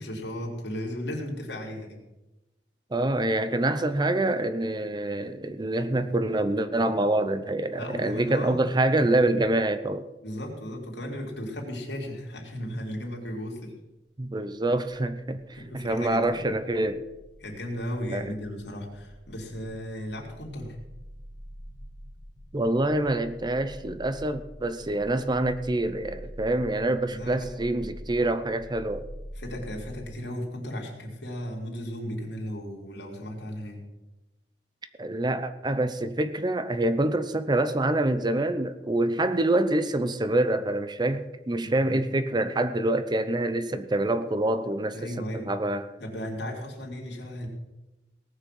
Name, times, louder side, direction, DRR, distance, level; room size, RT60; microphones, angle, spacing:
voice 1, 0.0-2.0 7.8-8.6 10.2-13.7 15.5-16.4 17.4-20.8 27.1-27.5 29.3-33.8 41.6-42.0 44.9-45.5 46.0-47.5, equal, 70° left, 3.5 m, -35 dB
voice 2, 2.9-10.1 14.2-15.4 15.7-17.1 18.1-18.3 22.5-29.1 35.0-45.9, right 1 dB, 25° right, 0.7 m, -26 dB
sound 1, 16.6-30.0, equal, 45° right, 2.1 m, -46 dB
18.5 x 6.5 x 7.8 m
head